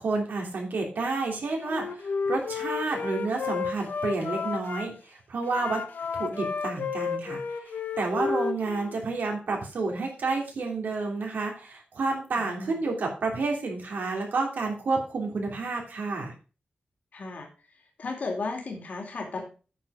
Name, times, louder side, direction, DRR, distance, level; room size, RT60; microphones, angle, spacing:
voice 1, 0.0-5.8 6.1-16.3, right 3 dB, 80° right, 1 dB, 3.2 m, -30 dB
Wind instrument woodwind instrument, 1.6-4.9 5.4-9.0, left 5 dB, 85° left, 1.1 m, -32 dB
voice 2, 12.4-12.8 17.1-17.5 18.0-19.4, left 3 dB, 55° left, 1 dB, 2.6 m, -34 dB
9.0 x 6.8 x 4.9 m, 0.36 s
wide cardioid pair, 170°, 3 cm